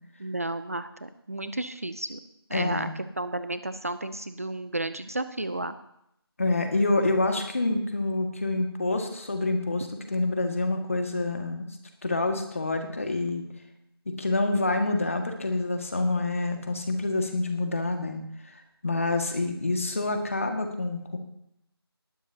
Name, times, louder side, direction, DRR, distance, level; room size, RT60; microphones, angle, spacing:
voice 1, 0.2-2.2 2.5-2.9 3.2-5.8, right 2 dB, 35° right, 12 dB, 0.6 m, -32 dB
voice 2, 2.5-2.8 6.4-11.7 12.0-13.5 14.1-18.2 18.5-21.2, left 2 dB, 30° left, 5 dB, 1.9 m, -27 dB
19.0 x 15.0 x 2.8 m, 0.77 s
figure-of-eight pair, 175°, 13 cm